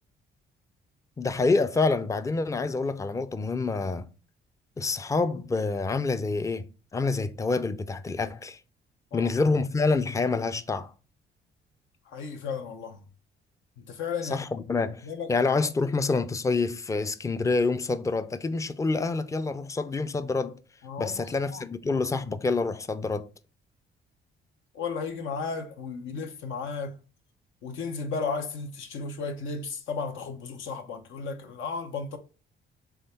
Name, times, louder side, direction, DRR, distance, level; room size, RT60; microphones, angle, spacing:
voice 1, 1.2-4.1 4.8-6.7 6.9-8.6 9.1-10.9 14.2-20.6 21.0-23.3, left 3 dB, 15° left, 0.4 m, -27 dB
voice 2, 9.1-9.5 12.1-13.0 13.8-14.4 15.0-15.3 15.5-15.7 20.8-21.2 21.5-21.6 24.7-27.0 27.6-32.2, left 5 dB, 80° left, 0.8 m, -34 dB
3.5 x 3.5 x 4.3 m
cardioid pair, 90°, 20 cm